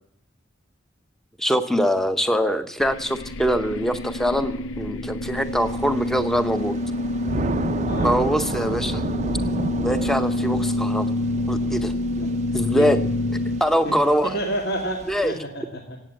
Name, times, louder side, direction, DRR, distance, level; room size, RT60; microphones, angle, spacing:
voice 1, 1.4-6.8 8.0-9.0 9.8-11.1 11.5-11.9 12.5-13.0 13.6-14.3 15.1-15.3, equal, ahead, 10 dB, 0.7 m, -23 dB
sound 1, 2.8-13.6, left 2 dB, 85° left, 0.6 m, -27 dB
Thunder / Rain, 5.4-15.3, right 3 dB, 35° right, 0.5 m, -32 dB
voice 2, 14.2-16.0, right 1 dB, 55° left, 2 dB, 2.1 m, -29 dB
16.5 x 8.8 x 7.6 m, 0.79 s
head